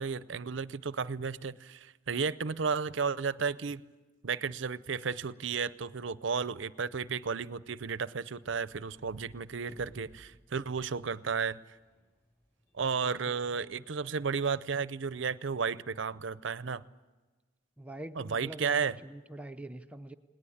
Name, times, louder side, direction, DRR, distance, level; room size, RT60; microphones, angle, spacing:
voice 1, 0.0-3.8 4.2-11.6 12.7-16.8 18.2-19.0, right 5 dB, 65° right, 0.6 m, -33 dB
sound 1, 8.4-13.8, equal, 10° left, 6.8 m, -59 dB
voice 2, 17.8-20.1, right 1 dB, 5° right, 0.6 m, -44 dB
20.5 x 19.0 x 8.6 m
head